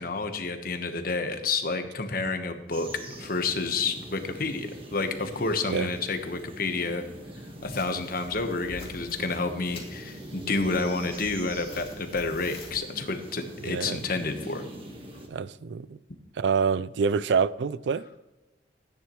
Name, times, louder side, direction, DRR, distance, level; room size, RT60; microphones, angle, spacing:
voice 1, 0.0-2.9 3.2-7.0 7.6-14.7, left 3 dB, 55° left, 1.1 m, -29 dB
sound 1, 2.7-15.3, right 1 dB, 30° right, 1.5 m, -43 dB
sound 2, 7.6-12.8, left 2 dB, 35° left, 2.7 m, -47 dB
voice 2, 13.6-14.0 15.3-16.0 16.4-18.1, right 5 dB, 70° right, 0.4 m, -26 dB
14.0 x 9.5 x 3.1 m
head